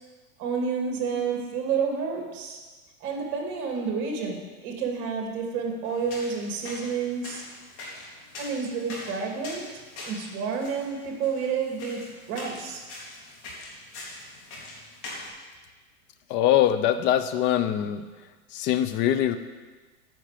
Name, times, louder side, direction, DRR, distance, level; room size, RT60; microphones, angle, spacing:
voice 1, 0.4-2.6 3.0-7.4 8.4-9.6 10.0-12.0 12.3-12.8, right 5 dB, 45° right, 1 dB, 2.7 m, -29 dB
sound 1, 5.8-15.3, left 2 dB, 45° left, 3.5 m, -43 dB
voice 2, 16.3-18.0 18.5-19.4, left 11 dB, 25° left, 10 dB, 0.5 m, -23 dB
10.0 x 6.0 x 7.4 m, 1.3 s
hypercardioid pair, 130°, 43 cm